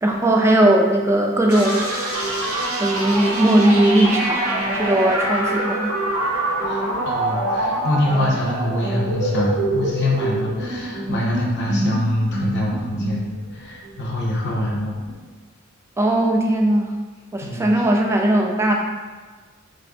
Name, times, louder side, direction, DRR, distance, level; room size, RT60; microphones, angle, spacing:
voice 1, 0.0-1.9 2.3-2.5 2.8-5.9 16.0-16.9 17.3-18.7, right 1 dB, 10° right, 1 dB, 0.3 m, -18 dB
sound 1, 1.5-15.1, right 1 dB, 80° right, 0.8 m, -25 dB
voice 2, 6.7-15.0 17.4-17.6, left 1 dB, 50° left, -3 dB, 0.6 m, -24 dB
4.1 x 2.7 x 2.6 m, 1.4 s
head